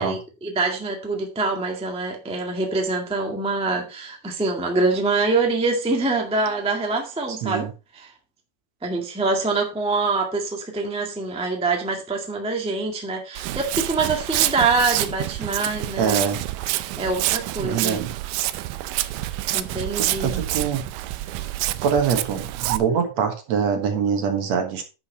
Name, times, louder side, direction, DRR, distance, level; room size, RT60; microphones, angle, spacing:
voice 1, 0.0-8.1 8.8-16.2 17.0-18.0 19.5-20.4, right 3 dB, 5° right, 0.9 m, -25 dB
voice 2, 7.4-7.7 16.0-16.4 17.6-18.1 19.9-20.8 21.8-24.8, right 6 dB, 60° right, 2.5 m, -24 dB
Walk footsteps, 13.4-22.8, right 15 dB, 85° right, 2.2 m, -27 dB
10.5 x 6.3 x 4.1 m
omnidirectional pair, 3.7 m